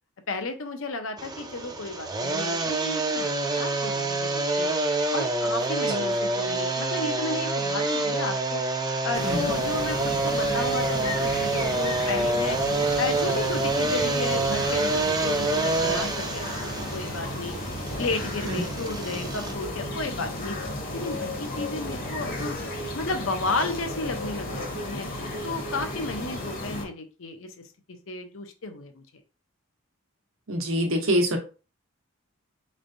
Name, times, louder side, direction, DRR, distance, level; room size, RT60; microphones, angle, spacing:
voice 1, 0.3-4.7 5.1-8.6 9.0-12.6 13.0-16.6 16.9-17.6 18.0-20.6 20.9-22.5 22.9-25.1 25.4-27.5 27.9-29.0, left 3 dB, 70° left, 7 dB, 0.7 m, -33 dB
sound 1, 1.2-19.5, right 2 dB, 20° right, 0.5 m, -27 dB
sound 2, 9.1-26.9, left 1 dB, 45° left, 1.0 m, -34 dB
voice 2, 9.2-9.5 18.4-18.6 30.5-31.4, equal, 75° right, 3 dB, 1.0 m, -25 dB
4.3 x 3.2 x 2.6 m, 0.34 s
head